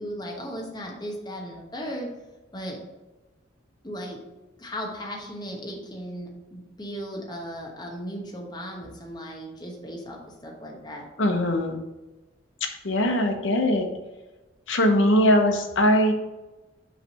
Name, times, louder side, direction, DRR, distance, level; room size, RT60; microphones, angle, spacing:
voice 1, 0.0-2.1 2.5-2.8 3.8-4.2 4.6-11.0, equal, 20° left, -1 dB, 1.1 m, -36 dB
voice 2, 11.2-11.8 12.8-13.9 14.7-16.1, left 1 dB, 85° left, 4 dB, 0.9 m, -21 dB
5.6 x 3.3 x 5.7 m, 1.1 s
head